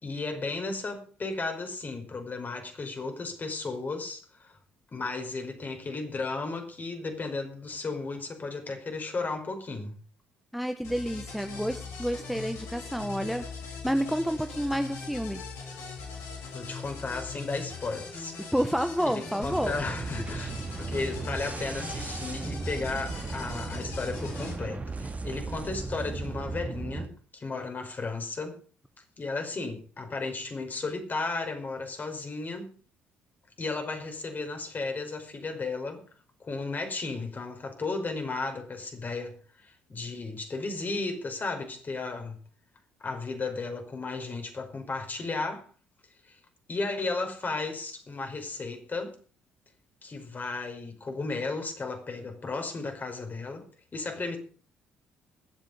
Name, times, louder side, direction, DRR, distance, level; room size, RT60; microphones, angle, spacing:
voice 1, 0.0-4.6 4.9-10.0 16.5-18.5 19.1-28.6 29.2-32.7 33.6-36.0 36.4-39.3 39.6-42.4 43.0-45.6 46.3-46.4 46.7-49.1 50.0-53.6 53.9-54.4, left 3 dB, 35° left, 5.3 m, -34 dB
voice 2, 10.5-15.4 18.4-19.7, equal, ahead, 1.4 m, -29 dB
sound 1, 10.8-24.6, left 4 dB, 65° left, 7.7 m, -41 dB
sound 2, 19.4-27.1, right 3 dB, 30° right, 2.5 m, -36 dB
22.0 x 8.2 x 5.3 m
hypercardioid pair, 50°, 5 cm